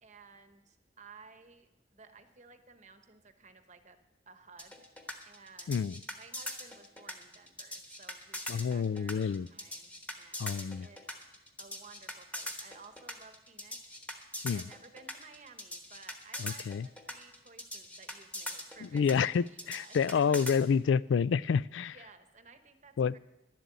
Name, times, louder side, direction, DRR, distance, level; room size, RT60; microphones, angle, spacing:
voice 1, 0.0-4.0 4.3-4.9 5.3-5.8 6.2-11.1 11.3-20.6 21.9-23.2, right 4 dB, 40° right, 8 dB, 1.0 m, -56 dB
sound 1, 4.6-20.6, left 1 dB, 10° left, 1.2 m, -41 dB
voice 2, 8.5-9.5 10.4-10.9 14.4-14.7 16.4-16.9 18.9-22.0 23.0-23.1, left 6 dB, 90° left, 19 dB, 0.3 m, -28 dB
11.5 x 7.7 x 8.3 m, 0.91 s
head